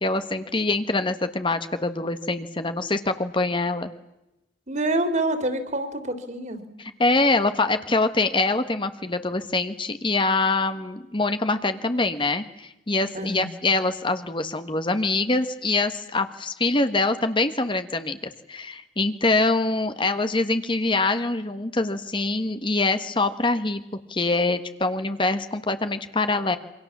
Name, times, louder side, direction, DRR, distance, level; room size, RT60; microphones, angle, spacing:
voice 1, 0.0-3.9 7.0-23.8 24.1-26.6, left 2 dB, 30° left, 9 dB, 1.3 m, -24 dB
voice 2, 4.7-6.6 13.1-13.5, right 2 dB, 45° right, 8 dB, 3.4 m, -26 dB
28.0 x 24.5 x 7.3 m, 0.92 s
head